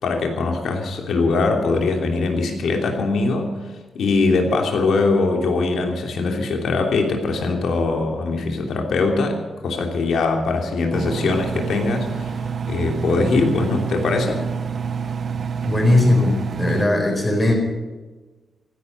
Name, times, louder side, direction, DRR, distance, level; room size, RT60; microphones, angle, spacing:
voice 1, 0.0-3.5 3.9-12.4 12.7-14.5, left 3 dB, 75° left, 2 dB, 3.0 m, -21 dB
Engine, 10.9-16.9, right 6 dB, 45° right, 0.5 m, -27 dB
voice 2, 15.6-17.5, left 2 dB, 20° left, 1 dB, 4.5 m, -18 dB
15.5 x 11.5 x 8.0 m, 1.2 s
wide cardioid pair, 150°, 0 cm